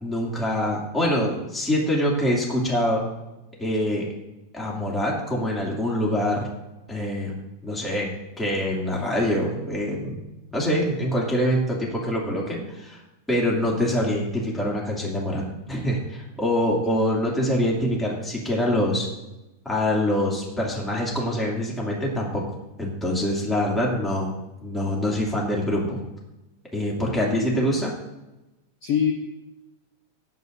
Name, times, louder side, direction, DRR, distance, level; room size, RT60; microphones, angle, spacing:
voice 1, 0.0-3.0 3.6-4.1 4.5-6.5 6.9-7.4 7.6-8.1 8.4-10.2 10.5-13.0 13.3-19.1 19.6-22.4 22.8-24.3 24.6-26.0 26.7-27.9, left 1 dB, ahead, -3 dB, 2.0 m, -25 dB
voice 2, 27.0-27.5 28.8-29.1, left 8 dB, 60° left, -1 dB, 1.8 m, -26 dB
17.0 x 11.0 x 2.7 m, 0.99 s
omnidirectional pair, 3.6 m